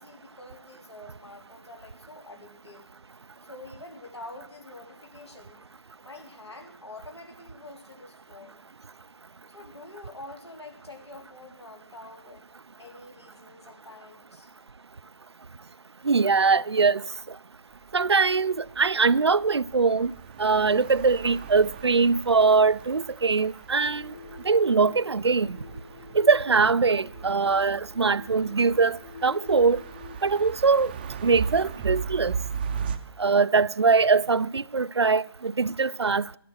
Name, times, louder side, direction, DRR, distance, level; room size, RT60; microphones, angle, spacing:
voice 1, 0.0-2.9 3.5-5.6 6.0-8.6 9.5-12.5 12.8-14.5, left 2 dB, 85° left, 3.4 m, -46 dB
voice 2, 16.0-17.0 17.9-20.1 20.4-24.1 24.4-25.6 26.1-29.8 30.2-30.9 31.2-32.4 33.2-36.4, right 4 dB, 80° right, 0.4 m, -22 dB
sound 1, 17.7-33.0, right 6 dB, 20° right, 0.6 m, -38 dB
sound 2, 23.8-30.2, left 6 dB, 45° left, 1.2 m, -47 dB
12.5 x 11.0 x 6.1 m
figure-of-eight pair, 150°, 14 cm